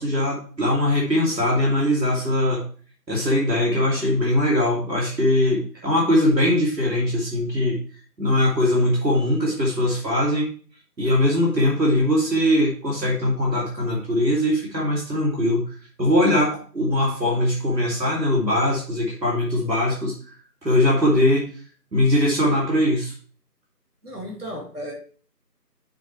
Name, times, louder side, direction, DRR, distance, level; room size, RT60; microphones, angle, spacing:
voice 1, 0.0-2.6 3.1-7.8 8.2-10.5 11.0-15.6 16.0-20.1 20.6-21.4 21.9-23.1, left 1 dB, 80° right, -3 dB, 2.8 m, -21 dB
voice 2, 24.0-24.9, equal, 65° right, -1 dB, 3.2 m, -34 dB
6.9 x 6.5 x 3.2 m, 0.41 s
figure-of-eight pair, 175°, 49 cm